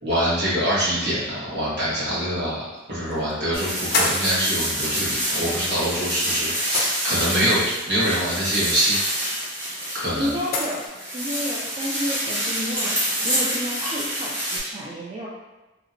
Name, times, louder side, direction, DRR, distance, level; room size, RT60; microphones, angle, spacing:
voice 1, 0.0-2.6 2.9-7.6 7.9-9.0 9.9-10.3, equal, 60° right, -10 dB, 1.3 m, -24 dB
sound 1, 2.0-2.1 3.1-3.3 3.9-4.4 5.8-6.0 6.7-7.4 9.3-9.4 10.5-10.9, left 2 dB, 55° left, 0.4 m, -26 dB
voice 2, 3.1-3.5 10.1-10.9 11.1-13.0 13.2-15.3, equal, 30° right, -7 dB, 0.4 m, -31 dB
sound 2, 3.5-14.6, equal, 15° right, 0.9 m, -27 dB
2.8 x 2.1 x 2.5 m, 1.1 s
head